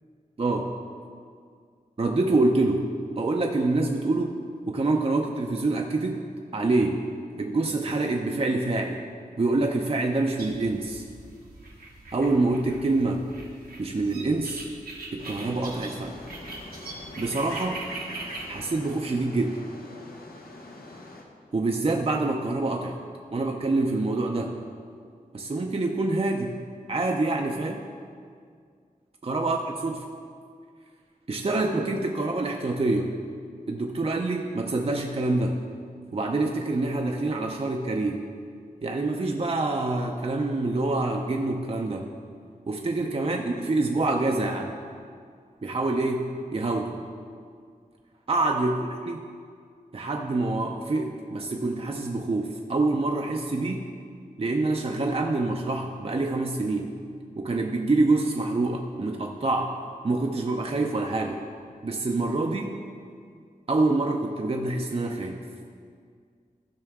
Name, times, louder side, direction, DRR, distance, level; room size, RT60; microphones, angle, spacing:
voice 1, 0.4-0.7 2.0-2.9 3.2-4.4 4.7-7.0 7.4-9.0 9.4-11.0 12.1-13.3 13.8-14.7 15.1-16.2 17.2-17.8 18.5-19.6 21.5-23.0 23.3-24.6 25.3-26.5 26.9-27.8 29.2-30.1 31.3-33.2 33.7-35.6 36.1-38.2 38.8-42.1 42.7-44.7 45.6-47.0 48.3-48.8 49.0-49.2 49.9-53.9 54.4-56.9 57.4-59.7 60.0-61.4 61.8-62.8 63.7-65.4, right 2 dB, 40° right, 1 dB, 0.6 m, -26 dB
sound 1, 10.4-18.7, right 2 dB, 90° right, 1.4 m, -41 dB
sound 2, 15.2-21.2, left 2 dB, 80° left, 1.1 m, -44 dB
14.5 x 5.6 x 3.6 m, 2.2 s
wide cardioid pair, 75°, 15 cm